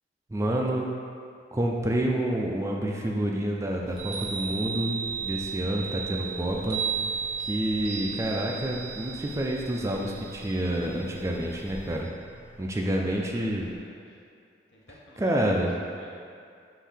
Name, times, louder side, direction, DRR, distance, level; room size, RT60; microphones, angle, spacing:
voice 1, 0.3-0.9 1.5-6.8 7.4-12.1 12.6-13.7 15.2-15.7, right 1 dB, 15° right, 0 dB, 0.3 m, -28 dB
sound 1, 3.6-13.8, equal, 40° left, 1.1 m, -52 dB
Chime, 3.9-12.0, right 6 dB, 60° right, 1.0 m, -35 dB
voice 2, 12.8-14.2 14.7-16.1, left 1 dB, 80° left, -4 dB, 0.9 m, -49 dB
5.6 x 2.7 x 3.4 m, 2.4 s
head